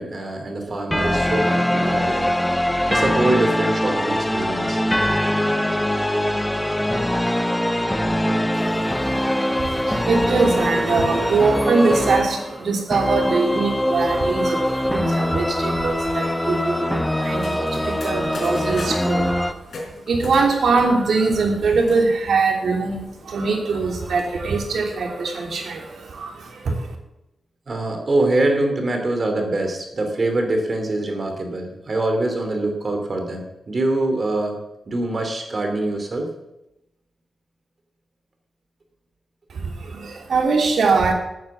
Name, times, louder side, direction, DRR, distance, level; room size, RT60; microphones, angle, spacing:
voice 1, 0.0-4.8 27.7-34.6 34.9-36.3, right 2 dB, 35° right, 4 dB, 2.8 m, -24 dB
sound 1, 0.9-19.5, left 1 dB, 5° left, 0.7 m, -22 dB
voice 2, 8.5-19.6 19.9-27.0 39.5-41.1, right 4 dB, 65° right, 2 dB, 2.8 m, -22 dB
sound 2, 17.2-19.2 19.7-22.1 22.5-22.6 22.8-23.4, left 2 dB, 55° left, 4.4 m, -38 dB
14.0 x 9.4 x 7.3 m, 0.90 s
wide cardioid pair, 165°, 0 cm